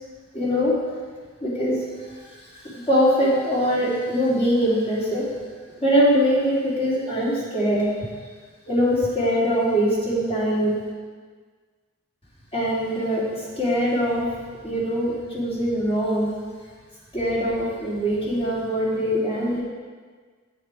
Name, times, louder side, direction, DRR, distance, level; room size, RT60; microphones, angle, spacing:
voice 1, 0.3-0.7 1.4-2.2 2.5-5.3 5.8-7.9 8.7-10.8 12.5-14.3 14.6-16.3 17.1-19.6, equal, 30° left, -7 dB, 3.1 m, -22 dB
9.3 x 8.5 x 4.9 m, 1.5 s
head